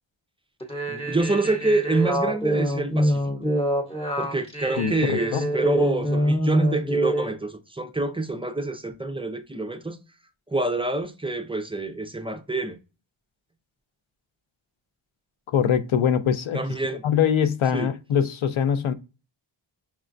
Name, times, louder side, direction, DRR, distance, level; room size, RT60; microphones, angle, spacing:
sound 1, 0.6-7.3, right 1 dB, 10° left, 0.8 m, -25 dB
voice 1, 0.9-3.2 4.2-10.0 10.5-12.8 16.5-17.0 17.7-17.9, right 2 dB, 15° right, 0.3 m, -27 dB
voice 2, 4.8-5.5 15.5-16.6 17.0-18.9, left 8 dB, 85° left, 0.6 m, -23 dB
5.9 x 2.2 x 2.5 m
wide cardioid pair, 130°, 47 cm